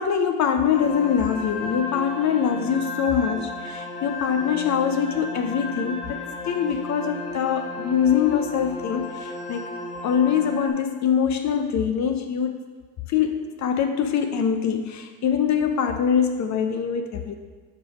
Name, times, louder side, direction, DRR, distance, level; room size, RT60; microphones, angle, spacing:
voice 1, 0.0-9.7 10.0-12.6 13.1-17.3, left 7 dB, 45° left, 6 dB, 0.6 m, -23 dB
sound 1, 0.7-10.7, left 2 dB, 15° left, 1.7 m, -34 dB
6.6 x 3.3 x 5.8 m, 1.4 s
hypercardioid pair, 65°, 40 cm